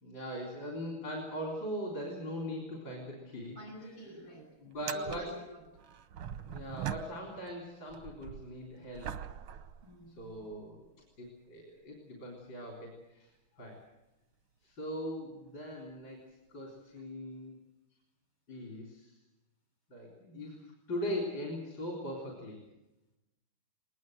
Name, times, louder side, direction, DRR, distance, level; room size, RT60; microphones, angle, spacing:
voice 1, 0.0-4.0 4.6-5.3 6.5-9.2 10.2-10.9 11.2-13.8 14.6-16.2 16.5-17.5 18.5-19.2 19.9-22.6, equal, 60° left, -1 dB, 4.4 m, -40 dB
sound 1, 3.3-3.5 3.8-3.9 4.7-7.6 7.9-10.6 11.3-11.4 15.5-15.6 17.0-17.1, right 9 dB, 90° right, 1.8 m, -43 dB
voice 2, 3.5-5.6 9.8-10.5 13.5-13.7 20.2-20.4, right 1 dB, 75° left, 1 dB, 8.4 m, -49 dB
20.5 x 20.0 x 7.8 m, 0.98 s
omnidirectional pair, 2.3 m